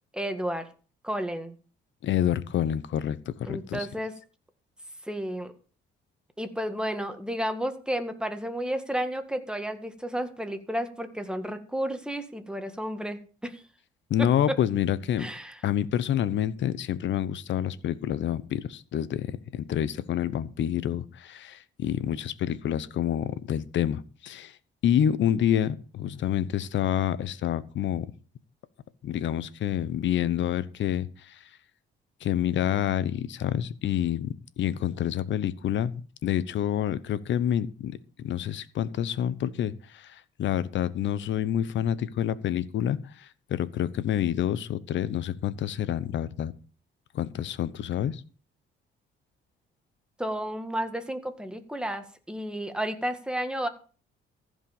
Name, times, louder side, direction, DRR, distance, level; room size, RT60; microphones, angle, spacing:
voice 1, 0.1-0.7 1.0-1.6 3.4-4.1 5.1-5.5 6.4-13.6 14.2-14.3 15.2-15.6 50.2-53.7, equal, 5° right, 7 dB, 1.8 m, -32 dB
voice 2, 2.0-3.9 14.1-15.3 15.6-24.6 24.8-28.1 29.0-31.4 32.2-46.5 47.1-48.2, left 10 dB, 70° left, 16 dB, 0.9 m, -28 dB
15.0 x 5.4 x 7.2 m, 0.39 s
cardioid pair, 90°, 20 cm